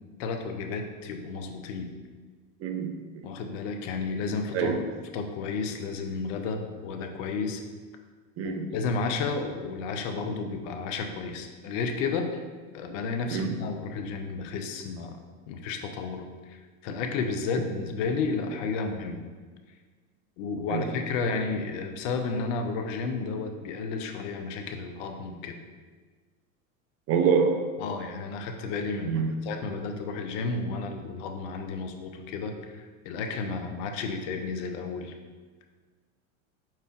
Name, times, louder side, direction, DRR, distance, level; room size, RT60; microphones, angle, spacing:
voice 1, 0.2-1.9 3.2-4.9 5.1-7.6 8.4-12.4 12.7-15.2 15.5-19.2 20.4-25.5 27.8-35.1, left 4 dB, 60° left, 5 dB, 0.7 m, -32 dB
voice 2, 2.6-3.3 4.5-4.8 8.4-8.7 13.3-13.6 20.7-20.9 27.1-27.7 29.0-29.3, right 6 dB, 35° right, 6 dB, 0.5 m, -26 dB
4.9 x 4.3 x 2.4 m, 1.4 s
hypercardioid pair, 90°, 42 cm